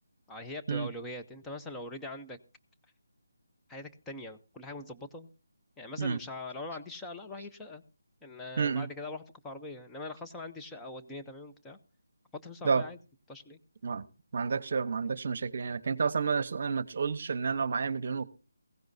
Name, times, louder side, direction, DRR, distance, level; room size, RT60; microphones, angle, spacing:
voice 1, 0.3-2.4 3.7-5.3 5.8-7.8 8.2-11.8 12.3-13.0 13.3-13.6, left 2 dB, 5° left, 0.6 m, -42 dB
voice 2, 8.6-8.9 12.6-12.8 13.8-14.0 14.3-18.2, right 5 dB, 45° right, 0.9 m, -30 dB
16.0 x 15.5 x 2.6 m
figure-of-eight pair, 165°, 0 cm